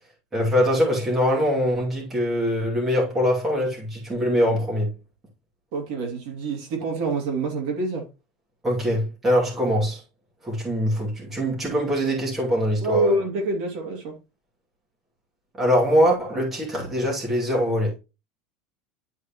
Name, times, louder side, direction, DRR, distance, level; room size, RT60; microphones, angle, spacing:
voice 1, 0.3-4.9 8.6-10.0 10.4-13.2 15.6-17.9, equal, 10° right, 2.5 m, -23 dB
voice 2, 5.7-8.0 12.8-14.1, right 2 dB, 50° right, 2.3 m, -26 dB
11.0 x 4.8 x 3.0 m
cardioid pair, 180°, 2 cm